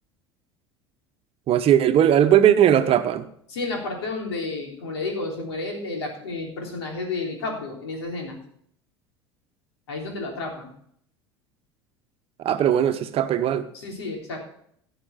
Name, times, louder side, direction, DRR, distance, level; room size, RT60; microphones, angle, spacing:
voice 1, 1.5-3.3 12.4-13.7, right 10 dB, 45° right, 1.0 m, -18 dB
voice 2, 3.5-8.4 9.9-10.7 13.7-14.4, left 3 dB, 75° left, 3.5 m, -31 dB
16.0 x 5.9 x 5.8 m
hypercardioid pair, 70°, 14 cm